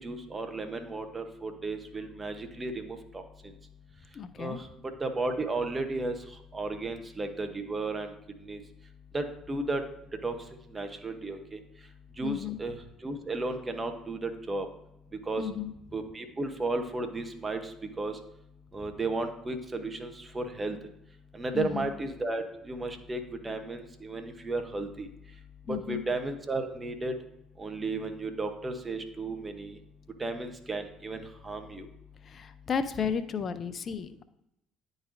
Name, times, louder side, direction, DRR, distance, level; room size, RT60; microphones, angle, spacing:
voice 1, 0.0-3.2 4.4-4.7 5.0-6.1 6.5-8.1 8.5-8.6 9.1-9.8 10.2-10.3 10.7-11.6 12.2-12.8 13.0-14.7 15.3-15.5 15.9-18.2 18.7-20.8 21.3-25.1 25.7-27.1 27.6-29.8 30.2-31.9, right 2 dB, 25° right, 6 dB, 0.9 m, -34 dB
voice 2, 4.1-4.6 12.2-12.6 15.4-15.7 21.5-21.9 25.7-26.0 32.2-34.2, left 7 dB, 45° left, 12 dB, 0.5 m, -33 dB
10.0 x 4.0 x 2.6 m, 0.82 s
hypercardioid pair, 55°, 0 cm